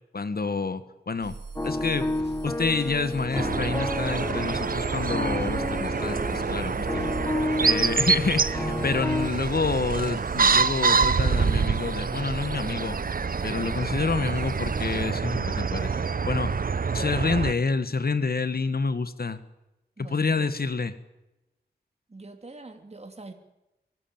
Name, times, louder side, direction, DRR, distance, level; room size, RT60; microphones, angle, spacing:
voice 1, 0.1-1.4 1.6-2.1 2.4-7.1 7.6-13.0 13.4-15.9 16.3-16.6 16.9-19.4 20.1-20.9, left 4 dB, 60° left, 13 dB, 1.6 m, -28 dB
sound 1, 1.2-15.0, right 4 dB, 85° right, 3.8 m, -41 dB
sound 2, 1.6-9.3, left 1 dB, 15° left, 1.3 m, -31 dB
sound 3, 3.3-17.5, right 5 dB, 55° right, 0.8 m, -26 dB
voice 2, 20.0-20.5 22.1-23.3, right 2 dB, 40° right, 5 dB, 2.8 m, -44 dB
24.5 x 15.5 x 8.9 m, 0.97 s
wide cardioid pair, 60°, 17 cm